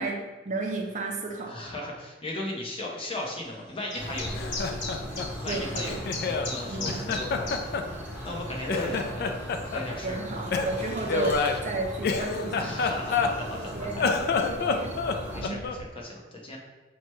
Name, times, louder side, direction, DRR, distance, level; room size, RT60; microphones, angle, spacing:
voice 1, 0.0-1.6 5.5-6.0 6.7-7.1 7.4-7.6 8.7-8.9 10.0-11.4 11.6-13.3 13.7-14.9 15.3-15.6, right 3 dB, 40° right, 1 dB, 0.5 m, -33 dB
voice 2, 1.5-4.8 5.4-6.0 6.2-7.7 8.0-10.4 12.6-14.0 15.3-16.6, left 1 dB, 30° left, -2 dB, 0.7 m, -37 dB
sound 1, 3.9-7.6, left 3 dB, 70° left, 1.1 m, -36 dB
sound 2, 3.9-15.4, equal, 10° right, 0.8 m, -38 dB
Laughter, 4.2-6.5 6.9-8.4 8.7-9.9 10.5-13.6 13.9-15.9, left 4 dB, 55° left, 0.3 m, -28 dB
5.9 x 2.1 x 3.0 m, 1.2 s
head